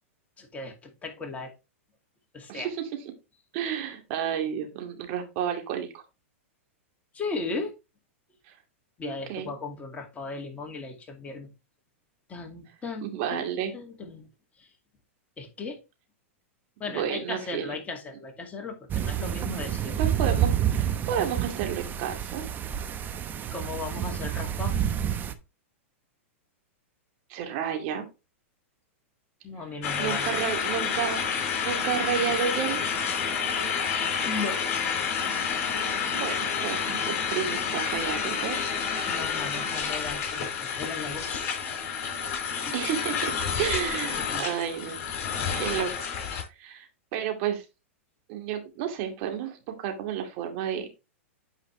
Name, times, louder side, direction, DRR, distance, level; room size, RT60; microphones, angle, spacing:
voice 1, 0.4-1.5 2.3-2.7 7.1-7.7 9.0-11.5 12.3-14.3 14.6-14.7 15.4-15.8 16.8-20.0 23.5-24.8 29.4-30.4 34.2-34.6 39.1-41.9 42.2-42.3 42.6-42.7 44.1-44.5, left 3 dB, 20° left, 2 dB, 2.3 m, -37 dB
voice 2, 2.5-2.9 3.5-6.0 8.5-8.6 9.0-9.5 13.0-13.7 16.9-17.8 20.0-22.4 27.3-28.1 30.0-32.8 36.1-38.7 42.7-45.0 45.6-46.1 46.6-47.6 48.3-50.9, right 9 dB, 50° right, 4 dB, 2.3 m, -31 dB
sound 1, 18.9-25.3, right 10 dB, 25° right, 0.9 m, -29 dB
sound 2, 29.8-46.4, left 6 dB, 45° left, 4.0 m, -29 dB
9.0 x 5.0 x 3.3 m, 0.27 s
hypercardioid pair, 115°, 7 cm